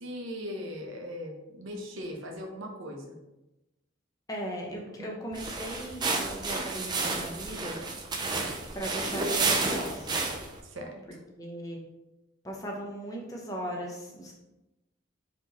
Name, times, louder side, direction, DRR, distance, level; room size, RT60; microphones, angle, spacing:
voice 1, 0.0-3.2 5.0-5.2 10.6-11.0, equal, 80° right, 1 dB, 0.8 m, -39 dB
voice 2, 4.3-7.8 8.7-10.2 11.4-11.8 12.4-14.3, equal, 20° left, -1 dB, 0.8 m, -37 dB
sound 1, 5.3-10.6, right 3 dB, 20° right, 0.4 m, -31 dB
4.3 x 3.0 x 4.0 m, 0.98 s
head